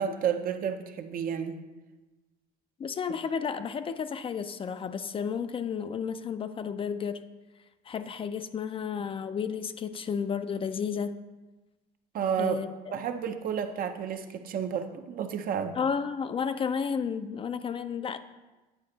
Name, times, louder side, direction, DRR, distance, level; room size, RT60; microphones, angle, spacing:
voice 1, 0.0-1.5 12.1-12.6 12.9-15.8, right 8 dB, 55° right, 7 dB, 0.6 m, -31 dB
voice 2, 2.8-7.2 7.9-11.2 12.4-12.7 15.8-18.2, left 6 dB, 35° left, 11 dB, 0.3 m, -32 dB
9.3 x 4.3 x 3.9 m, 1.1 s
cardioid pair, 110°, 17 cm